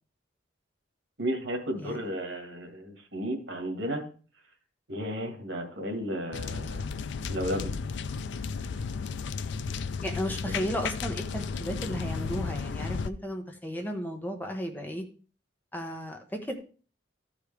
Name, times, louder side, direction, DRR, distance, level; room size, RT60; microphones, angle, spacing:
voice 1, 1.2-4.0 4.9-6.8 7.3-7.7 10.5-10.6, equal, 90° right, 5 dB, 1.8 m, -33 dB
sound 1, 6.3-13.1, left 5 dB, 75° left, 0.4 m, -34 dB
voice 2, 10.0-15.0 15.7-16.5, equal, 10° left, 3 dB, 0.9 m, -34 dB
13.0 x 4.9 x 3.4 m, 0.38 s
head